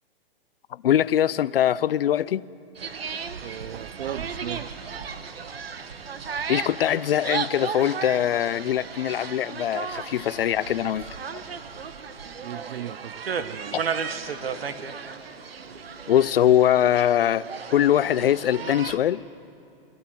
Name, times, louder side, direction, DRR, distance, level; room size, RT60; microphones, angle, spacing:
voice 1, 0.7-2.5 6.5-11.1 13.7-13.8 16.1-19.2, left 11 dB, 75° left, 0.6 m, -22 dB
sound 1, 2.7-19.0, right 6 dB, 85° right, 1.3 m, -34 dB
voice 2, 3.4-4.7 12.4-13.9, right 12 dB, 70° right, 0.5 m, -37 dB
23.5 x 16.5 x 7.6 m
hypercardioid pair, 140°, 29 cm